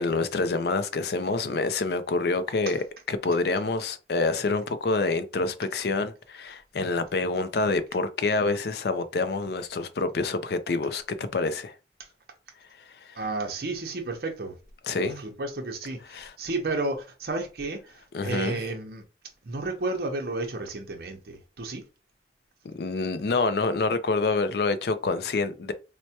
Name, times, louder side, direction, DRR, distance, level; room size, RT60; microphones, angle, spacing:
voice 1, 0.0-11.7 13.0-13.2 14.9-15.2 16.1-16.3 18.1-18.6 22.6-25.7, left 3 dB, 65° left, 0.4 m, -27 dB
voice 2, 13.1-14.6 15.0-19.0 19.4-21.8, right 2 dB, 60° right, 0.6 m, -32 dB
4.4 x 2.1 x 2.8 m
head